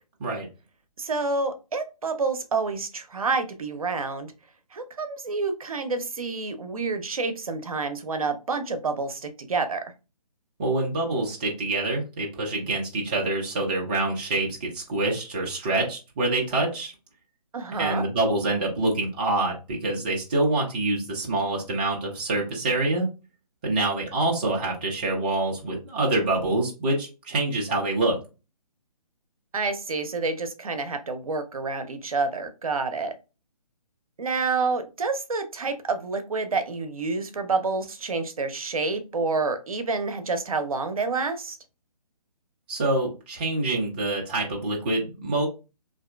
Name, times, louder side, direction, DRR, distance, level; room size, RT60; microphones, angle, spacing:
voice 1, 1.0-4.3 4.7-9.8 17.5-18.1 29.5-33.1 34.2-41.6, right 4 dB, 60° right, 8 dB, 0.7 m, -28 dB
voice 2, 10.6-16.9 17.8-23.1 23.6-28.2 42.7-45.5, right 2 dB, 15° right, -2 dB, 0.4 m, -26 dB
3.5 x 2.6 x 2.2 m, 0.30 s
figure-of-eight pair, 145°, 20 cm